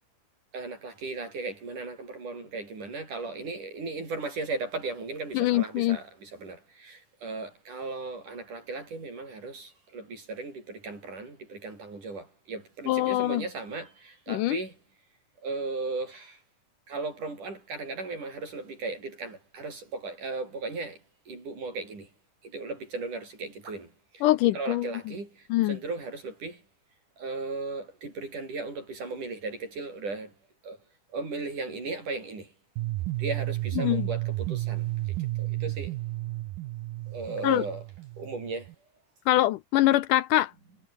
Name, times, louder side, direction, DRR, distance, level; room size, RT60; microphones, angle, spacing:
voice 1, 0.5-14.7 15.4-16.4 16.9-21.0 21.3-22.1 22.5-23.9 24.5-25.3 25.7-26.6 27.2-30.3 30.6-30.8 31.1-32.5 33.2-34.8 35.4-35.9 37.1-37.9 38.2-38.7, right 3 dB, 60° right, 9.4 m, -36 dB
voice 2, 5.4-6.0 12.9-13.4 14.3-14.6 24.2-24.9 25.5-25.8 33.8-34.1 37.4-37.6 39.3-40.5, left 15 dB, 75° left, 2.1 m, -23 dB
sound 1, 32.8-38.7, right 18 dB, 80° right, 2.5 m, -32 dB
omnidirectional pair, 4.0 m